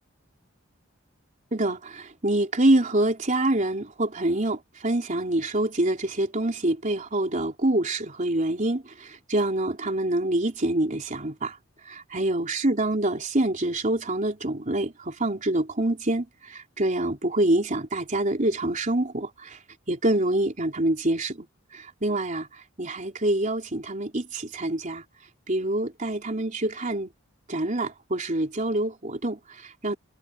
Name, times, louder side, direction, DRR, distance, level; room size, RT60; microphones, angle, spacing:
voice 1, 1.5-11.6 11.9-19.6 19.9-21.5 21.7-22.5 22.8-25.0 25.5-27.1 27.5-30.0, right 1 dB, 40° right, 3.7 m, -26 dB
head